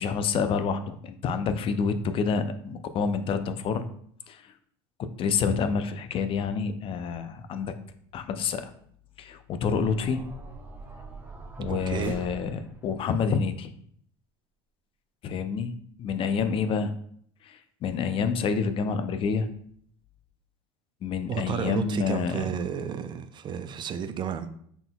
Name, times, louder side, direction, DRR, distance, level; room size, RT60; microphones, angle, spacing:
voice 1, 0.0-3.8 4.3-4.4 5.2-7.7 8.1-8.7 9.2-10.2 11.6-13.7 15.2-15.7 16.0-16.9 17.4-19.5 21.0-22.5, left 5 dB, 45° left, 10 dB, 0.4 m, -28 dB
sound 1, 9.6-12.9, right 2 dB, 15° right, 0.8 m, -41 dB
voice 2, 11.7-12.2 21.3-24.5, right 8 dB, 35° right, 10 dB, 0.4 m, -32 dB
3.9 x 3.8 x 2.2 m, 0.64 s
hypercardioid pair, 85°, 13 cm